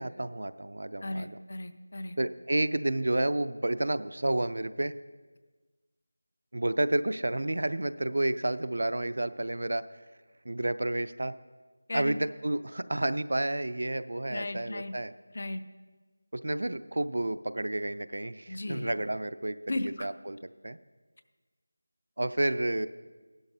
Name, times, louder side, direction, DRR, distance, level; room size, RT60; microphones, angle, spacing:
voice 1, 0.0-1.4 2.2-4.9 6.5-9.8 10.4-11.3 11.9-15.1 16.3-19.6 20.0-20.8 22.2-22.9, right 1 dB, 60° right, 13 dB, 0.4 m, -30 dB
voice 2, 1.0-2.2 11.9-12.2 14.3-14.9 15.3-15.6 18.5-18.9 19.7-20.1, left 2 dB, 35° left, 11 dB, 0.4 m, -35 dB
16.0 x 11.5 x 2.7 m, 1.3 s
figure-of-eight pair, 180°, 0 cm